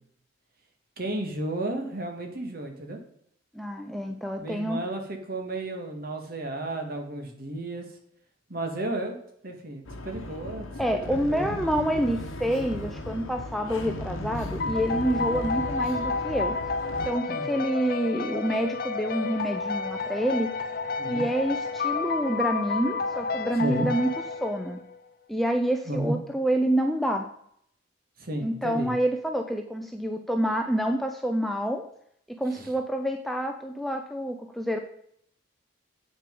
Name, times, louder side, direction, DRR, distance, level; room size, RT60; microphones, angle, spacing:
voice 1, 1.0-3.0 4.4-7.8 8.5-9.2 9.4-10.7 11.1-11.6 17.3-17.5 21.0-21.3 23.5-23.9 25.9-26.1 28.2-28.9 32.5-32.7, right 1 dB, 45° right, 3 dB, 1.7 m, -33 dB
voice 2, 3.5-4.8 10.8-16.6 17.1-20.5 21.1-24.1 24.4-24.8 25.3-27.3 28.4-31.8 32.3-34.8, right 1 dB, ahead, 4 dB, 0.5 m, -27 dB
sound 1, 9.8-17.1, left 1 dB, 80° left, 1.0 m, -36 dB
sound 2, 14.6-25.0, left 4 dB, 45° left, 0.6 m, -31 dB
8.3 x 6.4 x 5.2 m, 0.69 s
head